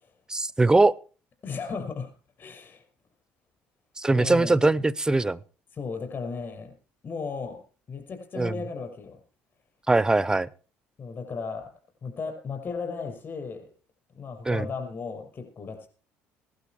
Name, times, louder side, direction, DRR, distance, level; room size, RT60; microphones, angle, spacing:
voice 1, 0.3-0.9 4.0-5.4 8.4-8.6 9.9-10.5 14.4-14.7, right 2 dB, 15° right, 19 dB, 0.7 m, -21 dB
voice 2, 1.4-2.1 2.4-2.8 4.1-4.6 5.7-6.7 7.0-7.6 7.9-9.2 11.0-11.7 12.0-13.7 14.2-15.9, left 5 dB, 45° left, 4 dB, 5.8 m, -35 dB
17.0 x 12.0 x 4.5 m, 0.39 s
supercardioid pair, 80°, 5 cm